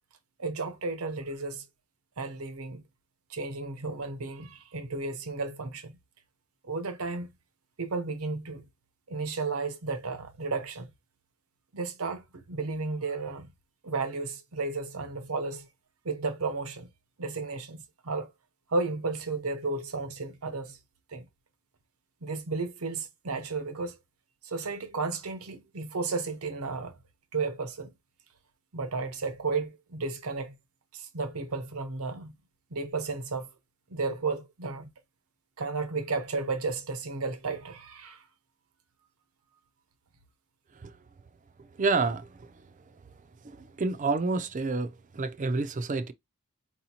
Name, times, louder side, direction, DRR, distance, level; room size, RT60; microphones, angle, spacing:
voice 1, 0.4-1.6 2.2-2.8 3.3-6.0 6.6-7.3 7.8-8.7 9.1-10.9 11.7-13.5 13.8-15.7 16.0-16.9 17.2-18.3 18.7-20.8 21.1-21.2 22.2-23.9 24.4-26.9 27.3-27.9 28.7-30.5 30.9-32.3 32.7-33.5 33.9-34.9 35.6-38.2, right 3 dB, 80° right, 0.8 m, -33 dB
voice 2, 41.8-42.7 43.4-46.1, right 3 dB, 35° right, 0.4 m, -29 dB
4.7 x 2.8 x 2.8 m
head